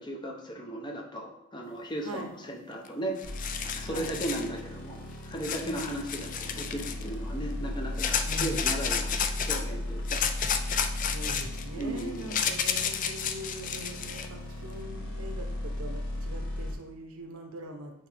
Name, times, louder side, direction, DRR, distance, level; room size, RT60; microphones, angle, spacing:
voice 1, 0.0-3.2 3.8-10.2 11.7-12.3, right 1 dB, 20° left, 1 dB, 0.8 m, -36 dB
sound 1, 2.9-3.0 3.2-4.5 5.4-7.1 8.0-9.6 10.1-14.3, left 7 dB, 40° left, 0.4 m, -31 dB
sound 2, 3.2-16.7, left 1 dB, 55° left, 1.3 m, -37 dB
voice 2, 8.2-8.6 11.0-18.1, right 1 dB, 90° right, 4 dB, 0.9 m, -42 dB
9.2 x 3.1 x 3.5 m, 0.86 s
head